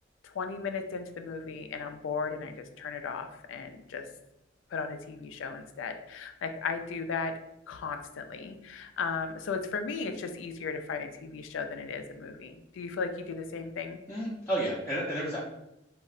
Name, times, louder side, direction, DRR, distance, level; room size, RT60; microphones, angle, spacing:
voice 1, 0.2-4.1 4.7-7.3 7.7-14.0, left 5 dB, 75° left, 7 dB, 0.3 m, -36 dB
voice 2, 14.1-15.4, right 1 dB, 10° left, -8 dB, 0.4 m, -31 dB
2.4 x 2.1 x 3.6 m, 0.87 s
head